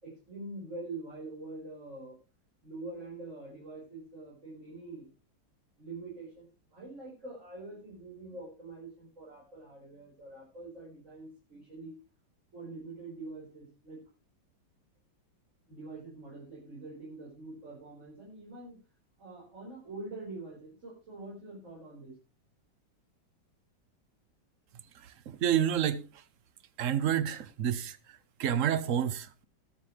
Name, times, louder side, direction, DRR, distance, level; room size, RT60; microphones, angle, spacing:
voice 1, 0.0-2.2 2.6-5.1 5.8-6.4 6.7-11.9 12.5-14.0 15.7-18.8 19.2-22.2, right 2 dB, 40° right, 5.2 m, -45 dB
voice 2, 24.9-26.2 26.8-29.4, right 9 dB, 60° right, 0.9 m, -30 dB
20.0 x 7.3 x 3.3 m
omnidirectional pair, 2.1 m